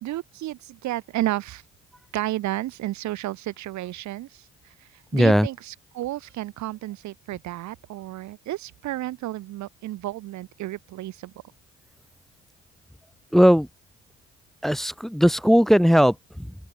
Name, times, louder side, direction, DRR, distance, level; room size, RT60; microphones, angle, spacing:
voice 1, 0.0-1.6 2.1-11.3, right 15 dB, 75° right, 1.7 m, -32 dB
voice 2, 5.1-5.5 13.3-13.7 14.6-16.5, equal, ahead, 0.5 m, -18 dB
open air
supercardioid pair, 60°, 29 cm